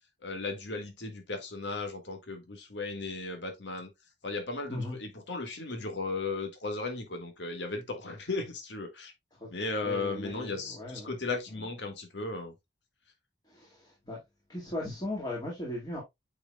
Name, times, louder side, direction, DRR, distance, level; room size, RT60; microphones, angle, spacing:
voice 1, 0.2-3.9 4.2-9.1 9.5-12.5, left 3 dB, 85° left, 1.8 m, -36 dB
voice 2, 9.8-11.2 11.6-11.7 13.4-14.2 14.5-16.0, left 1 dB, 25° left, 2.1 m, -38 dB
8.8 x 4.8 x 2.3 m
head